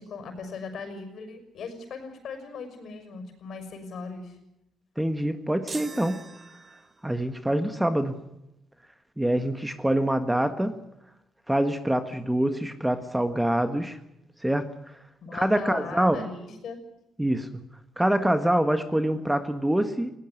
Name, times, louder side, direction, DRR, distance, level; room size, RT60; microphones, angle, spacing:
voice 1, 0.0-4.4 15.2-16.8, left 4 dB, 65° left, 8 dB, 6.2 m, -38 dB
voice 2, 5.0-6.2 7.0-8.2 9.2-10.8 11.5-14.0 14.4-14.7 15.3-16.2 17.2-17.6 18.0-20.1, right 1 dB, 5° right, 9 dB, 1.5 m, -25 dB
sound 1, 5.7-7.2, right 4 dB, 35° right, 1.8 m, -42 dB
20.5 x 18.0 x 9.6 m, 0.86 s
cardioid pair, 105°, 0 cm